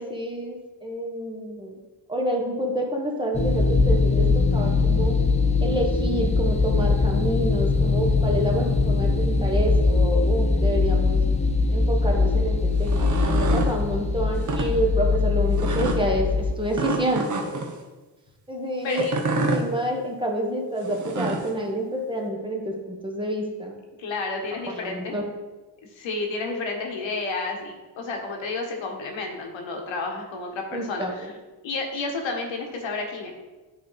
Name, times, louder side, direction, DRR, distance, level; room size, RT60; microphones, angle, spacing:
voice 1, 0.0-1.8 2.1-5.2 5.6-11.2 11.7-17.6 18.5-19.0 19.5-23.7 24.7-25.2 30.7-31.3, right 1 dB, 10° right, 0 dB, 1.1 m, -28 dB
sound 1, 3.3-16.5, left 3 dB, 15° left, 0.5 m, -22 dB
sound 2, 12.8-13.7 14.4-14.7 15.6-16.0 16.7-17.7 18.9-19.6 20.8-21.5, right 3 dB, 40° right, 1.0 m, -27 dB
voice 2, 18.8-19.2 24.0-25.2 25.9-31.3 31.6-33.3, left 3 dB, 85° left, 1 dB, 1.3 m, -31 dB
9.2 x 3.5 x 4.0 m, 1.2 s
cardioid pair, 95°, 44 cm